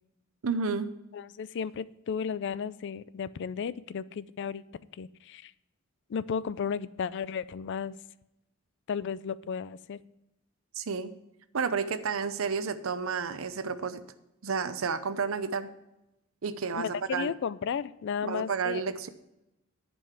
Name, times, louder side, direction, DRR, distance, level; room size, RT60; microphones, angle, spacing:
voice 1, 0.4-0.9 10.8-11.1 11.5-14.0 14.4-15.7 16.4-17.3 18.2-19.1, right 5 dB, 75° right, 12 dB, 0.7 m, -31 dB
voice 2, 1.1-4.6 5.0-5.5 6.1-8.0 8.9-10.0 16.7-18.8, left 6 dB, 60° left, 18 dB, 0.4 m, -34 dB
10.5 x 5.4 x 5.8 m, 0.89 s
head